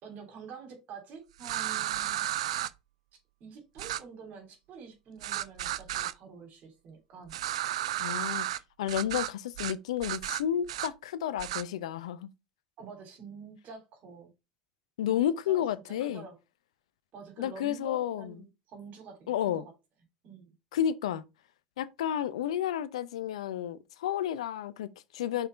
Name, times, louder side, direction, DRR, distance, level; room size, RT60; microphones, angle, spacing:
voice 1, 0.0-2.3 3.4-7.4 12.8-14.3 15.0-15.1 15.5-16.3 17.1-19.7 20.2-20.5, right 5 dB, 55° right, 3.0 m, -47 dB
sound 1, 1.4-2.7 3.8-4.0 5.2-6.1 7.3-8.6 8.9-9.3 9.6-9.8 10.0-10.9 11.4-11.6, right 13 dB, 80° right, 0.4 m, -33 dB
voice 2, 8.0-8.5 8.8-12.3 15.0-16.3 17.4-18.3 19.3-19.7 20.7-21.2 21.8-25.5, left 10 dB, 75° left, 0.6 m, -31 dB
5.6 x 4.5 x 4.5 m
hypercardioid pair, 75°, 3 cm